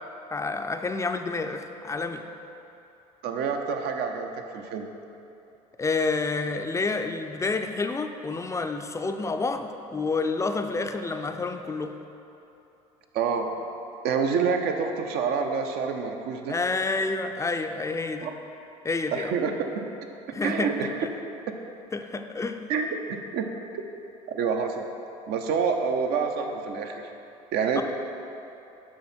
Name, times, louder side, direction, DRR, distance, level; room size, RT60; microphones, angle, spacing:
voice 1, 0.3-2.2 5.8-11.9 16.5-18.3 18.8-19.3 20.3-21.1 21.9-22.6 27.8-27.9, left 3 dB, 15° left, 6 dB, 0.5 m, -29 dB
voice 2, 3.2-4.9 13.1-13.5 14.0-16.6 18.2-18.3 19.1-19.5 20.4-21.1 22.7-23.4 23.7-23.8 24.3-24.8 25.3-27.1 27.5-27.8, right 6 dB, 60° right, 4 dB, 0.7 m, -27 dB
7.5 x 5.7 x 4.4 m, 2.9 s
hypercardioid pair, 75°, 18 cm